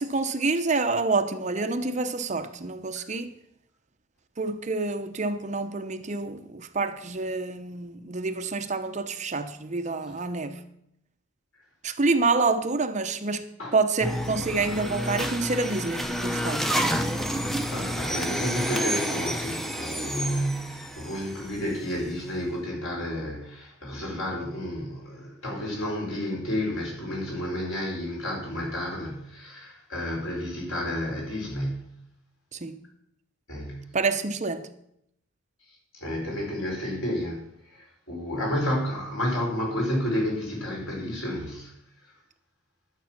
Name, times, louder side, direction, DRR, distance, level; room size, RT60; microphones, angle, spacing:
voice 1, 0.0-3.3 4.4-10.6 11.8-13.5 13.7-16.8 32.5-32.8 33.9-34.7, right 3 dB, 35° right, 0.7 m, -27 dB
sound 1, 14.0-22.1, equal, ahead, 0.6 m, -30 dB
voice 2, 17.7-31.9 33.5-33.9 35.9-37.5 37.7-41.7, equal, 85° left, 4.6 m, -31 dB
12.0 x 7.4 x 5.9 m
head